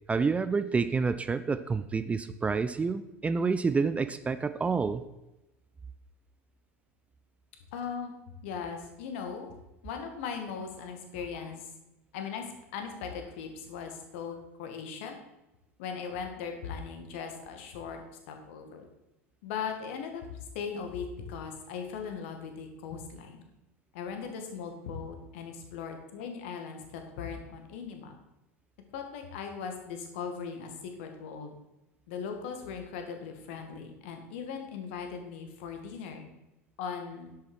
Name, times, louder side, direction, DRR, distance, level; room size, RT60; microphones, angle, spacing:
voice 1, 0.1-5.0, right 4 dB, 15° right, 12 dB, 0.5 m, -28 dB
voice 2, 7.7-8.1 8.4-9.5 9.8-11.6 12.1-12.5 12.7-15.2 15.8-18.9 19.4-20.2 20.5-23.4 23.9-28.1 28.9-30.7 31.0-31.5 32.1-36.3 36.8-37.3, left 6 dB, 60° left, 5 dB, 2.0 m, -39 dB
10.5 x 8.4 x 4.6 m, 0.96 s
figure-of-eight pair, 75°, 8 cm